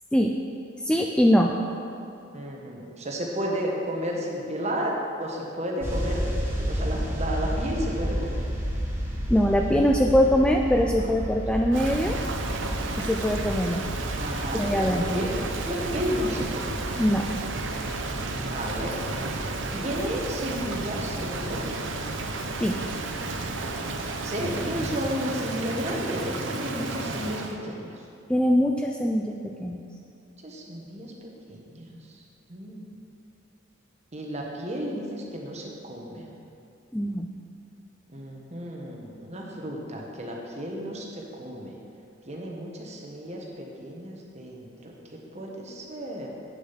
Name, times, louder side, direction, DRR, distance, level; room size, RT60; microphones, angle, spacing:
voice 1, 0.8-1.5 9.3-12.2 13.0-13.8 14.5-15.2 17.0-17.3 22.6-22.8 28.3-29.8 36.9-37.3, equal, 5° left, 1 dB, 0.3 m, -22 dB
voice 2, 2.3-6.3 6.6-8.4 14.2-15.3 15.6-16.8 18.4-19.0 19.7-21.7 24.2-27.9 30.4-32.2 32.5-32.8 34.1-36.3 38.1-41.7 42.3-46.3, equal, 35° right, -1 dB, 1.3 m, -33 dB
sound 1, 5.8-25.0, equal, 10° right, 1.4 m, -33 dB
Rain, 11.7-27.6, right 3 dB, 65° right, 0.8 m, -32 dB
8.8 x 6.8 x 5.7 m, 2.6 s
head